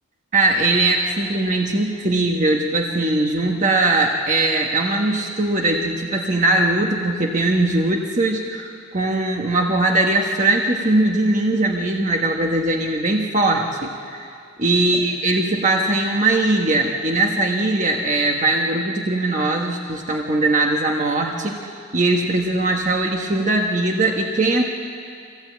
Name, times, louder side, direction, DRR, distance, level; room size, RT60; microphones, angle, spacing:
voice 1, 0.3-14.3 14.6-24.6, right 2 dB, 35° right, 1 dB, 1.3 m, -20 dB
24.0 x 16.5 x 8.6 m, 2.4 s
head